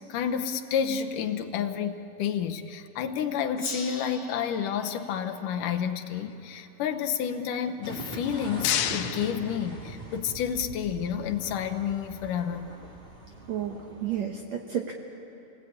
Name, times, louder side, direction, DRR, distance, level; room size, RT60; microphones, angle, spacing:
voice 1, 0.1-12.6, left 8 dB, 70° left, 5 dB, 2.3 m, -30 dB
Gong, 3.6-6.7, left 3 dB, 50° left, 0.7 m, -42 dB
sound 1, 7.8-14.2, right 2 dB, 15° right, 2.6 m, -42 dB
sound 2, 8.1-10.3, left 11 dB, 85° left, 2.7 m, -32 dB
voice 2, 13.5-14.9, right 9 dB, 65° right, 2 dB, 2.0 m, -31 dB
28.5 x 19.5 x 8.6 m, 2.8 s
omnidirectional pair, 4.1 m